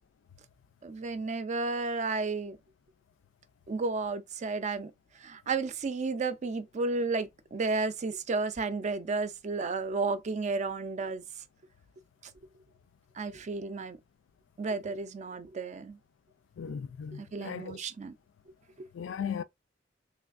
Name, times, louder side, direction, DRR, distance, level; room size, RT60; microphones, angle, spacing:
voice 1, 0.8-2.6 3.7-4.9 5.2-11.2 13.2-14.0 14.6-16.0 17.2-18.1 18.8-18.9, right 3 dB, 40° right, 0.4 m, -32 dB
voice 2, 16.6-17.8 18.9-19.4, left 7 dB, 75° left, 0.3 m, -37 dB
3.2 x 3.2 x 2.4 m
head